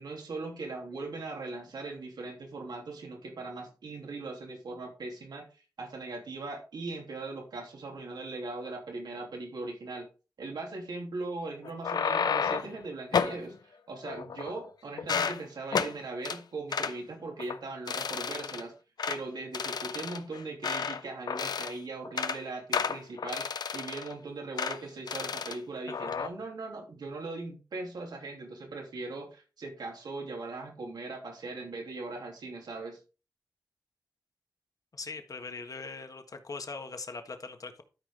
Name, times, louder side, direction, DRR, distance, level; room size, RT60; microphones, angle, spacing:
voice 1, 0.0-5.4 5.8-10.1 10.4-18.7 19.1-33.0, right 3 dB, 85° right, 3.0 m, -39 dB
sound 1, 11.6-12.8 13.1-13.4 14.0-14.7 15.0-15.4 15.7-15.9 16.3-16.4 16.7-17.0 17.4-17.6 17.9-18.6 19.0-19.2 19.5-21.0 21.3-21.8 22.1-22.4 22.7-24.1 24.6-24.8 25.1-25.6 25.9-26.3, left 6 dB, 80° left, 0.7 m, -31 dB
voice 2, 34.9-37.8, left 4 dB, 55° left, 1.5 m, -41 dB
12.5 x 5.1 x 3.9 m
cardioid pair, 55°, 7 cm